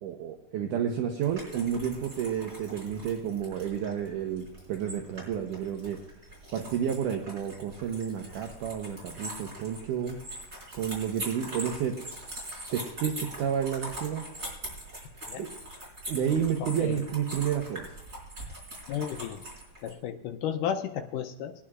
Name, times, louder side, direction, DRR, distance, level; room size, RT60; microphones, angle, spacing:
voice 1, 0.0-6.0 6.5-10.2 10.7-12.0 12.7-14.2 15.4-15.5 16.1-17.9, right 8 dB, 75° right, 3 dB, 2.1 m, -30 dB
sound 1, 1.2-19.9, right 1 dB, 20° right, 4.6 m, -42 dB
voice 2, 16.6-17.0 18.9-19.4 19.8-21.5, left 9 dB, 80° left, 5 dB, 2.0 m, -33 dB
21.5 x 10.0 x 2.5 m, 0.96 s
omnidirectional pair, 4.5 m